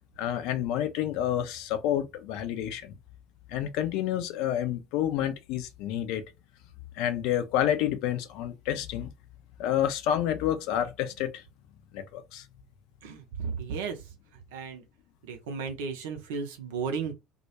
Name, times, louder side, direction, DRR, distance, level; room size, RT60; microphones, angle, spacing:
voice 1, 0.2-3.0 3.5-6.3 7.0-9.1 9.6-11.4 11.9-12.5, left 11 dB, 60° left, 0.4 m, -29 dB
voice 2, 13.0-14.0 14.3-14.8 15.2-17.1, right 5 dB, 70° right, 0.5 m, -34 dB
2.3 x 2.1 x 2.8 m
figure-of-eight pair, 60°, 0 cm